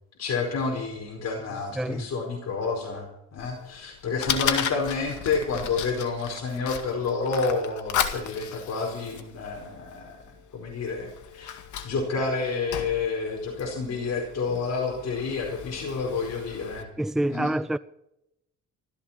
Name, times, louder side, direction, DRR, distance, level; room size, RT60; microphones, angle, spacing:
voice 1, 0.2-10.2 10.5-11.5 11.8-16.9 17.3-17.5, left 4 dB, 60° left, 4.7 m, -29 dB
Fire, 3.4-16.8, left 9 dB, 75° left, 2.1 m, -35 dB
voice 2, 17.0-17.8, right 1 dB, ahead, 0.6 m, -26 dB
15.5 x 14.0 x 5.7 m
cardioid pair, 90°, 30 cm